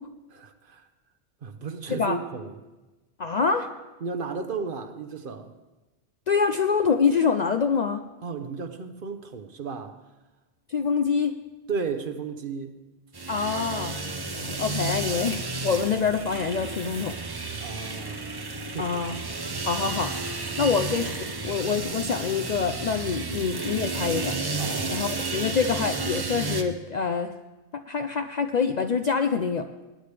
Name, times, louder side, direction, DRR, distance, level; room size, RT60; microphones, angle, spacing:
voice 1, 0.3-0.9 1.4-2.6 4.0-5.5 8.2-10.0 11.7-12.8 17.6-18.3 18.7-19.0 20.5-20.7 24.6-24.9, right 5 dB, 55° right, 9 dB, 0.9 m, -34 dB
voice 2, 3.2-3.7 6.3-8.0 10.7-11.4 13.3-14.0 14.4-17.2 18.8-19.2 19.6-20.1 20.4-24.4 24.9-27.3 27.7-29.7, left 5 dB, 55° left, 6 dB, 0.5 m, -26 dB
sound 1, 13.1-26.6, right 3 dB, 25° right, 0.7 m, -32 dB
19.5 x 9.8 x 3.4 m, 1.1 s
omnidirectional pair, 1.2 m